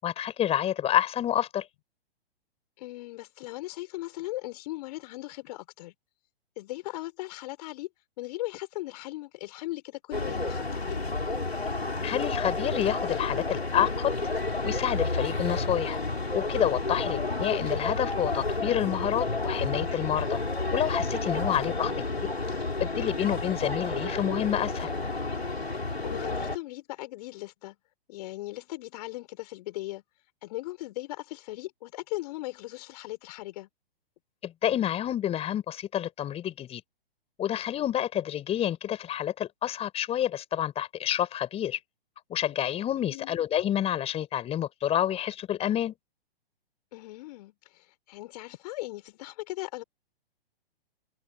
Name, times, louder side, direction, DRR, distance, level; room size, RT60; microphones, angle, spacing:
voice 1, 0.0-1.7 12.0-14.1 14.6-16.0 16.3-20.4 20.7-22.3 22.8-24.9 34.4-36.8 37.4-41.8 42.3-45.9, left 11 dB, 20° left, 5.7 m, -29 dB
voice 2, 2.8-5.9 6.6-7.9 8.2-11.0 17.0-17.4 21.5-22.1 26.0-27.8 28.1-30.0 30.4-33.7 43.0-43.4 46.9-49.8, left 18 dB, 40° left, 6.1 m, -38 dB
sound 1, 10.1-26.6, left 3 dB, 85° left, 4.4 m, -30 dB
figure-of-eight pair, 120°, 30 cm